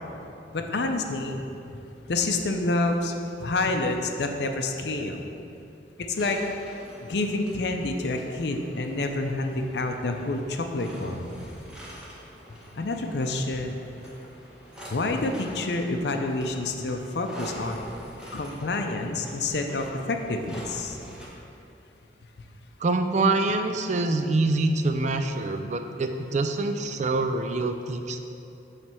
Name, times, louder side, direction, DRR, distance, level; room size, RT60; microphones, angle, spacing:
voice 1, 0.5-1.4 1.7-1.8 2.1-3.1 3.4-5.2 6.1-6.4 7.0-11.2 12.7-13.8 14.9-17.8 18.3-21.0, left 2 dB, 65° left, 4 dB, 0.5 m, -28 dB
sound 1, 6.1-21.3, equal, 5° right, 1.0 m, -45 dB
voice 2, 22.8-28.2, right 2 dB, 40° right, 6 dB, 0.4 m, -25 dB
7.2 x 3.3 x 6.1 m, 2.8 s
head